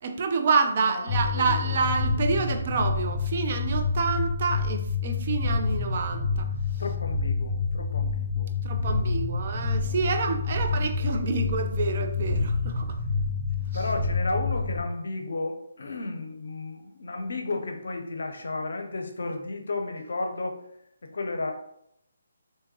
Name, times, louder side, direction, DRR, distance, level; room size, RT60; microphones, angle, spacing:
voice 1, 0.0-6.5 8.6-13.0, right 4 dB, 45° right, 6 dB, 0.4 m, -28 dB
voice 2, 0.8-1.8 6.8-10.1 10.5-11.4 13.6-20.6 21.0-21.5, left 2 dB, 65° left, 4 dB, 0.6 m, -34 dB
sound 1, 1.1-14.8, left 4 dB, 60° right, 1.5 m, -28 dB
3.6 x 2.7 x 2.9 m, 0.75 s
figure-of-eight pair, 145°, 0 cm